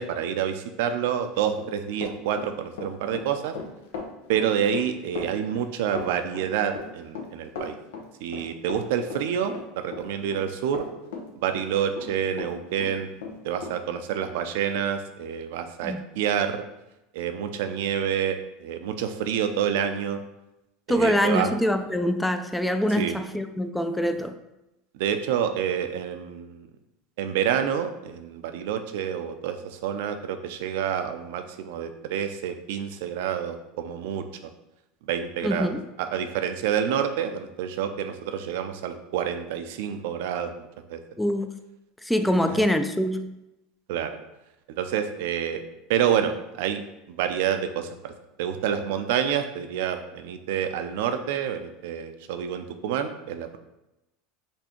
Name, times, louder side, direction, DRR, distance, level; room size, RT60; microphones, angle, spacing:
voice 1, 0.0-3.5 4.3-7.8 8.2-10.8 11.4-13.1 13.4-16.6 17.1-20.2 20.9-21.5 23.0-23.2 24.9-26.7 27.2-34.2 35.0-41.0 42.3-42.6 43.9-44.2 44.8-45.6 45.9-46.8 47.1-48.1 48.4-53.6, right 8 dB, 75° right, 8 dB, 0.5 m, -28 dB
Run, 1.3-12.5 12.8-13.8, left 4 dB, 90° left, 0.8 m, -37 dB
voice 2, 20.9-24.4 35.4-35.8 41.2-41.6 42.0-43.4, equal, 5° left, 8 dB, 0.4 m, -24 dB
4.4 x 2.7 x 4.4 m, 0.93 s
supercardioid pair, 120°, 0 cm